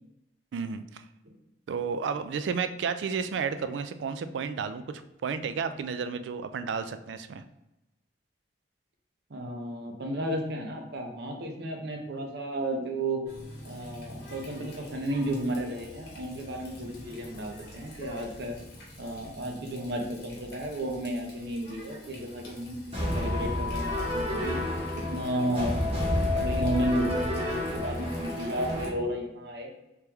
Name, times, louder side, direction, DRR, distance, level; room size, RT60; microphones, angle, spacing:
voice 1, 0.5-1.0 1.7-7.4, right 6 dB, 85° right, 11 dB, 0.3 m, -32 dB
voice 2, 9.3-13.2 13.6-18.6 19.0-24.6 25.0-29.7, right 1 dB, 65° right, 3 dB, 0.7 m, -33 dB
Water tap faucet, 13.3-28.9, left 1 dB, 65° left, 1.1 m, -47 dB
sound 1, 22.9-28.9, left 1 dB, 35° right, 1.3 m, -30 dB
3.4 x 3.3 x 2.9 m, 0.95 s
head